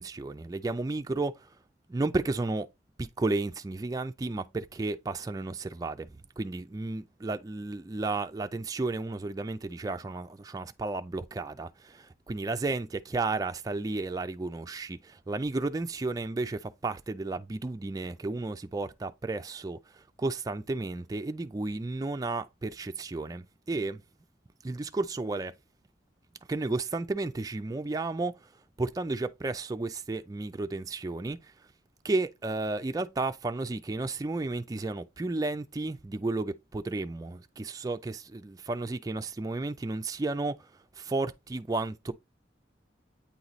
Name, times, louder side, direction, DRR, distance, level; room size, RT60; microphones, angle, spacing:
voice 1, 0.0-1.5 1.9-2.7 3.0-24.0 24.6-25.5 26.5-28.5 28.8-31.5 32.0-42.1, right 2 dB, 20° right, 0.3 m, -33 dB
8.6 x 3.0 x 4.0 m
head